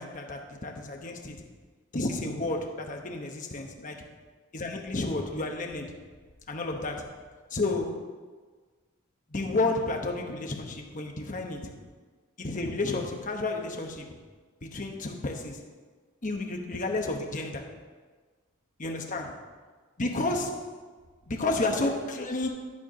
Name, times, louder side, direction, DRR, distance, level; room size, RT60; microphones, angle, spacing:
voice 1, 0.0-1.5 1.9-4.1 4.5-5.9 6.5-7.1 7.5-8.1 9.3-11.7 12.4-14.2 14.6-15.6 16.2-17.8 18.8-19.4 20.0-20.6 21.3-22.5, left 2 dB, 35° left, 3 dB, 1.0 m, -31 dB
12.0 x 4.5 x 6.3 m, 1.4 s
head